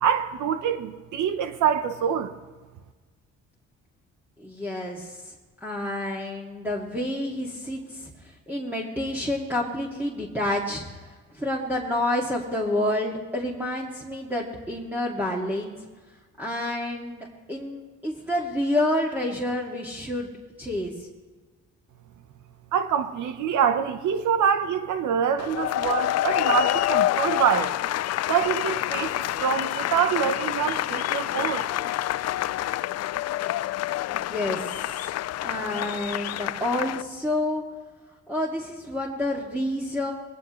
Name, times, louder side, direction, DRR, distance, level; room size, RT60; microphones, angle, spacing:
voice 1, 0.0-2.3 22.7-27.7 28.3-31.7, right 8 dB, 75° right, 8 dB, 1.0 m, -25 dB
voice 2, 4.4-5.3 5.6-15.7 16.4-20.3 20.6-21.1 34.1-34.9 35.4-37.6 38.3-40.1, left 1 dB, 5° right, -4 dB, 2.3 m, -29 dB
sound 1, 25.4-37.0, left 14 dB, 60° left, 0.4 m, -27 dB
21.5 x 17.0 x 3.2 m, 1.4 s
cardioid pair, 90°, 30 cm